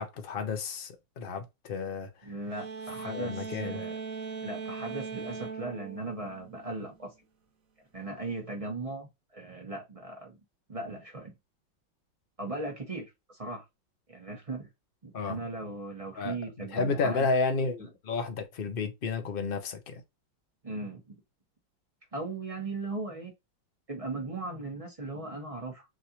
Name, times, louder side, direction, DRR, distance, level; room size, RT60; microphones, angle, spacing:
voice 1, 0.0-2.3 3.1-3.8 15.1-15.4 16.1-20.0, left 4 dB, 50° left, 0.6 m, -32 dB
voice 2, 2.2-3.9 4.4-7.1 7.9-10.4 10.7-11.3 12.4-13.6 14.1-14.7 15.0-17.3 20.6-21.2 22.1-23.3 23.9-25.9, right 2 dB, 20° right, 1.0 m, -38 dB
sound 1, 2.5-7.0, right 5 dB, 50° right, 1.2 m, -40 dB
6.3 x 2.6 x 3.0 m
omnidirectional pair, 2.2 m